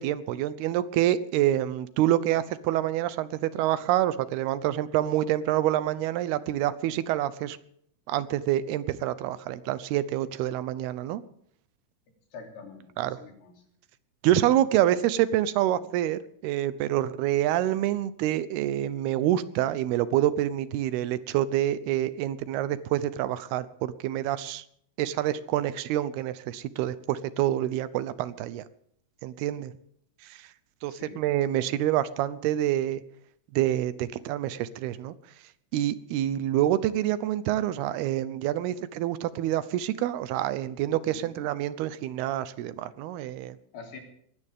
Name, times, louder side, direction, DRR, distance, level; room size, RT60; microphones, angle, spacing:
voice 1, 0.0-7.6 8.1-11.2 13.0-13.2 14.2-24.6 25.0-28.6 29.2-29.7 30.2-30.5 30.8-33.0 33.5-35.1 35.7-43.6, right 12 dB, 80° right, 15 dB, 2.7 m, -27 dB
voice 2, 12.3-13.5 30.9-31.2 41.0-41.3 43.7-44.0, left 5 dB, 75° left, 2 dB, 5.1 m, -45 dB
21.5 x 16.5 x 3.6 m, 0.67 s
omnidirectional pair, 4.6 m